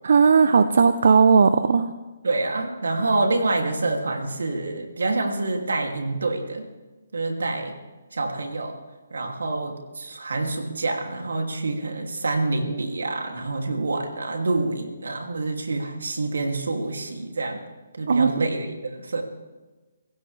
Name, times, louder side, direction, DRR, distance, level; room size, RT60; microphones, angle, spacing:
voice 1, 0.0-1.9 18.1-18.4, right 5 dB, 65° right, 11 dB, 0.7 m, -17 dB
voice 2, 2.2-6.7 7.1-7.7 8.1-8.8 9.1-17.6 17.9-19.2, right 2 dB, 90° right, 3 dB, 2.8 m, -27 dB
24.5 x 16.0 x 3.4 m, 1.2 s
hypercardioid pair, 160°, 0 cm